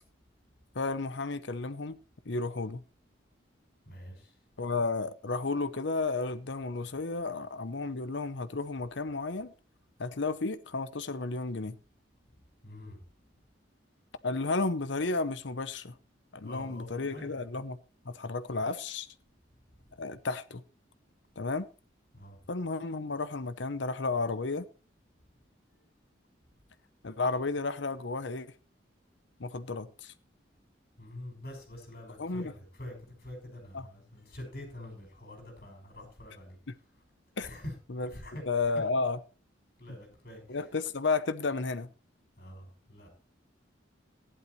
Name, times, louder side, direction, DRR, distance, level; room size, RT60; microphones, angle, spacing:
voice 1, 0.7-2.0 2.2-2.8 4.6-9.5 10.0-11.7 14.2-15.9 16.3-17.8 18.0-19.1 20.0-20.6 21.4-21.7 22.5-24.7 27.0-28.5 29.4-30.1 32.2-32.5 33.7-33.9 37.4-37.5 37.9-38.1 38.5-39.2 40.5-41.9, left 3 dB, 75° left, 0.9 m, -32 dB
voice 2, 3.9-4.3 12.6-13.0 16.4-17.3 22.1-22.4 31.0-36.6 37.4-37.7 38.0-38.4 39.8-40.7 42.4-43.1, left 1 dB, 50° left, 5.9 m, -45 dB
15.0 x 11.0 x 3.2 m
head